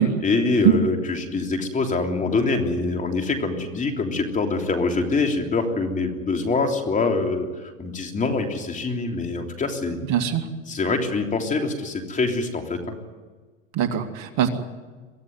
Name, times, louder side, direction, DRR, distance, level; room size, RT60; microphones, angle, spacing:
voice 1, 0.2-10.0 10.7-12.8, left 3 dB, 20° left, 3 dB, 3.4 m, -24 dB
voice 2, 10.1-10.5 13.7-14.5, right 10 dB, 45° right, 6 dB, 2.7 m, -21 dB
24.0 x 15.0 x 9.5 m, 1.4 s
hypercardioid pair, 110°, 39 cm